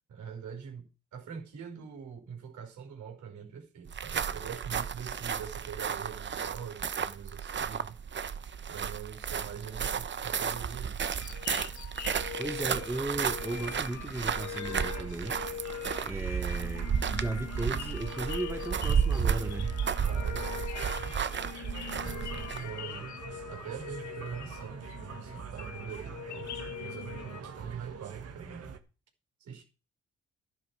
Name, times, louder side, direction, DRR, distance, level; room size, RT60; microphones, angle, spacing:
voice 1, 0.1-8.0 8.7-11.0 20.0-21.1 22.0-26.5 26.8-28.7 29.4-29.6, right 7 dB, 75° right, 5.1 m, -43 dB
sound 1, 3.9-22.7, right 7 dB, 40° right, 0.9 m, -33 dB
sound 2, 11.2-27.4, left 10 dB, 70° left, 1.4 m, -42 dB
voice 2, 12.4-15.4 16.0-19.7, right 2 dB, 10° right, 1.0 m, -36 dB
sound 3, 13.2-28.8, right 6 dB, 55° right, 1.8 m, -46 dB
12.5 x 11.0 x 4.9 m
cardioid pair, 90°, 30 cm